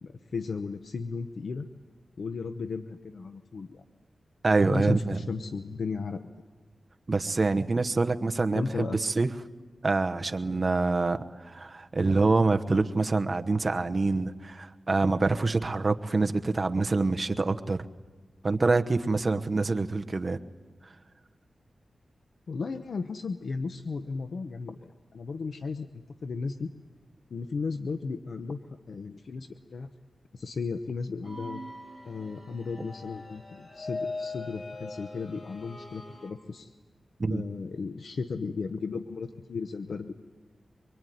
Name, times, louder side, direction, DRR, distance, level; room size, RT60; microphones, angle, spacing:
voice 1, 0.0-1.7 2.2-3.8 4.7-6.2 8.5-9.0 22.5-26.7 27.3-28.6 28.9-29.9 30.3-31.6 32.0-36.7 37.3-40.1, left 4 dB, 70° left, 8 dB, 1.0 m, -35 dB
voice 2, 4.4-5.2 7.1-9.3 9.8-17.8 18.4-20.4 37.2-37.4, right 3 dB, 40° right, 7 dB, 1.1 m, -26 dB
sound 1, 31.2-36.3, left 2 dB, 40° left, 4.7 m, -41 dB
25.0 x 23.0 x 9.4 m, 1.3 s
wide cardioid pair, 95°, 0 cm